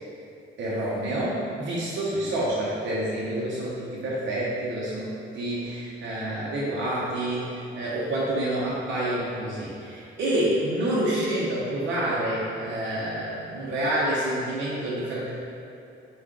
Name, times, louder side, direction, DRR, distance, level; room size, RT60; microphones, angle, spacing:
voice 1, 0.6-15.3, right 1 dB, 65° right, -7 dB, 0.8 m, -28 dB
4.5 x 2.4 x 3.7 m, 2.6 s
cardioid pair, 90°, 20 cm